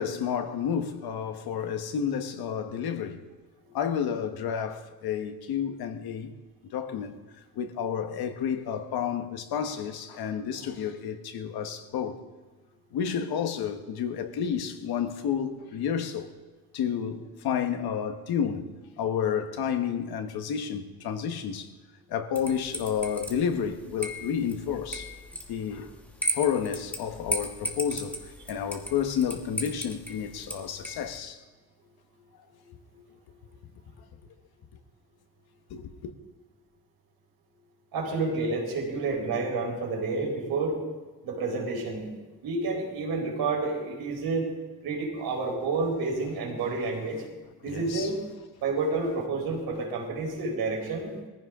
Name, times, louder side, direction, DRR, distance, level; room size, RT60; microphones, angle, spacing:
voice 1, 0.0-3.2 3.7-6.3 6.7-7.1 7.5-12.2 12.9-16.3 16.7-21.7 22.1-25.1 25.5-25.9 26.3-28.2 28.5-31.4 35.7-36.1 47.6-48.1, left 8 dB, 90° left, 1.4 m, -30 dB
sound 1, 22.4-31.2, equal, 5° left, 1.5 m, -37 dB
voice 2, 32.6-33.1 37.9-40.8 41.2-42.1 42.4-44.5 44.8-47.2 47.6-48.1 48.6-51.1, right 3 dB, 85° right, 4.5 m, -29 dB
21.5 x 15.0 x 3.7 m
cardioid pair, 155°, 36 cm